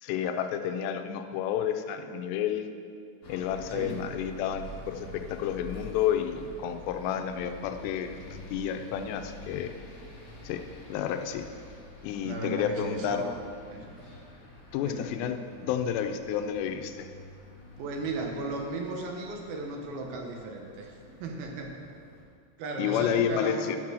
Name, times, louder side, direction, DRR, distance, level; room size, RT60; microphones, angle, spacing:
voice 1, 0.0-2.7 3.3-9.7 10.4-10.6 10.9-11.5 12.0-13.3 14.7-17.1 22.8-23.8, left 9 dB, 90° left, 7 dB, 2.8 m, -30 dB
sound 1, 3.2-22.2, left 1 dB, 40° left, 2.4 m, -48 dB
voice 2, 3.7-4.0 12.2-13.4 13.7-14.0 14.8-15.1 17.8-21.8 22.6-23.8, right 3 dB, 75° right, 2 dB, 2.6 m, -36 dB
10.0 x 7.4 x 6.2 m, 2.3 s
omnidirectional pair, 4.8 m